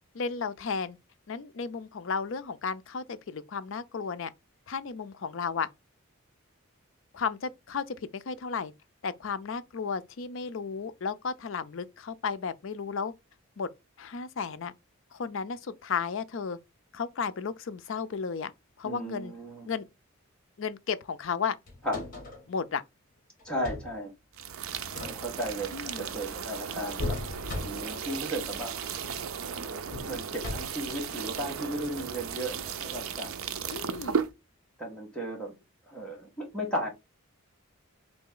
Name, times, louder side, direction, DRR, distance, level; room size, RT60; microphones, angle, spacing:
voice 1, 0.1-1.0 1.3-4.3 4.7-5.7 7.1-8.7 9.0-13.1 13.6-13.7 14.0-14.7 15.1-16.6 16.9-18.5 18.8-19.3 19.7-19.9 20.6-21.6 22.5-22.8 25.7-26.1 33.7-34.2, left 5 dB, 60° left, 0.4 m, -33 dB
voice 2, 18.8-19.7 21.8-22.0 23.4-24.1 25.1-27.2 27.6-28.9 29.6-33.3 34.8-35.5 35.9-36.9, equal, 5° left, 1.7 m, -35 dB
sound 1, 21.7-22.5 23.4-24.0 24.8-25.5 27.0-28.0 28.9-29.3 29.9-30.9 32.6-32.7, left 2 dB, 40° left, 1.7 m, -37 dB
sound 2, 24.3-34.3, right 7 dB, 75° right, 0.5 m, -36 dB
4.0 x 3.2 x 3.7 m
head